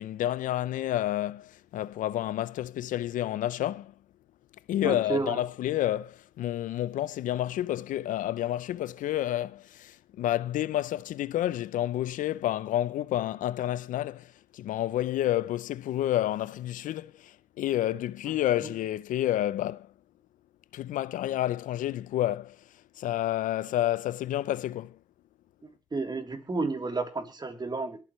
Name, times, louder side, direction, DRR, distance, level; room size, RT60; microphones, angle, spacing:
voice 1, 0.0-3.9 4.7-19.9 20.7-25.0, left 13 dB, 75° left, 0.5 m, -30 dB
voice 2, 4.8-5.4 18.6-18.7 25.9-28.0, right 3 dB, 30° right, 3.3 m, -31 dB
23.0 x 8.5 x 3.1 m
supercardioid pair, 65°, 13 cm